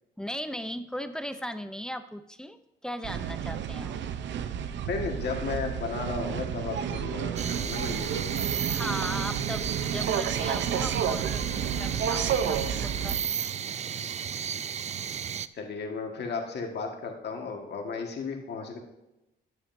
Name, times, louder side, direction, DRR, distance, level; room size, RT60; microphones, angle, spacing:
voice 1, 0.2-4.0 8.7-13.2, equal, 5° left, 10 dB, 0.6 m, -37 dB
sound 1, 3.0-13.2, right 8 dB, 65° right, 0.7 m, -31 dB
voice 2, 4.8-8.6 15.5-18.8, left 4 dB, 60° left, 2 dB, 1.7 m, -34 dB
sound 2, 7.4-15.5, right 8 dB, 35° right, 0.4 m, -34 dB
13.5 x 9.7 x 2.7 m, 0.94 s
cardioid pair, 90°, 20 cm